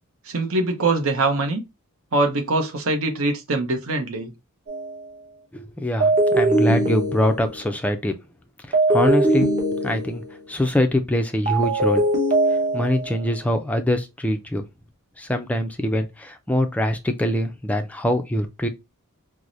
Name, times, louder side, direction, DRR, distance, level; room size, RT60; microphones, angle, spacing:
voice 1, 0.3-1.6 2.1-4.3, right 2 dB, 65° right, 0.8 m, -23 dB
sound 1, 4.7-5.0 6.0-7.7 8.7-10.4 11.5-13.2, right 2 dB, 35° right, 0.9 m, -21 dB
voice 2, 5.5-8.1 8.7-9.5 9.8-10.2 10.5-12.0 12.7-14.6 15.2-18.7, left 1 dB, 5° left, 0.3 m, -23 dB
4.6 x 2.1 x 2.6 m
head